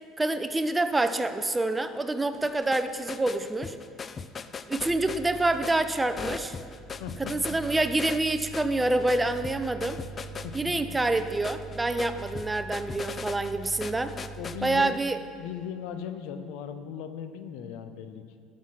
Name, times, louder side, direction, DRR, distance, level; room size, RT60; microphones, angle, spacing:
voice 1, 0.2-3.8 4.7-6.6 7.2-10.0 10.5-14.1 14.6-15.2, right 2 dB, 15° right, 10 dB, 0.6 m, -27 dB
sound 1, 2.3-15.1, left 5 dB, 35° left, 0.4 m, -40 dB
sound 2, 4.8-14.8, right 5 dB, 55° right, 0.9 m, -43 dB
voice 2, 7.0-7.3 10.4-10.7 14.4-15.0 15.4-18.2, left 8 dB, 75° left, 9 dB, 0.7 m, -38 dB
12.5 x 6.3 x 5.8 m, 2.2 s
supercardioid pair, 80°, 0 cm